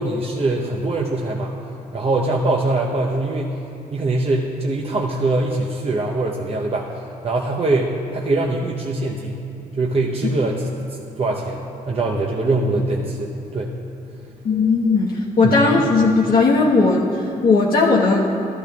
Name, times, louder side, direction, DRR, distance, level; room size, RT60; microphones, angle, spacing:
voice 1, 0.0-1.5 1.9-3.6 3.9-9.5 9.8-10.7 11.2-13.7 15.4-15.6, right 2 dB, 40° right, -2 dB, 0.8 m, -22 dB
voice 2, 14.4-17.0 17.4-18.3, left 3 dB, 65° left, -4 dB, 1.0 m, -16 dB
13.5 x 12.5 x 2.3 m, 2.8 s
cardioid pair, 75°, 16 cm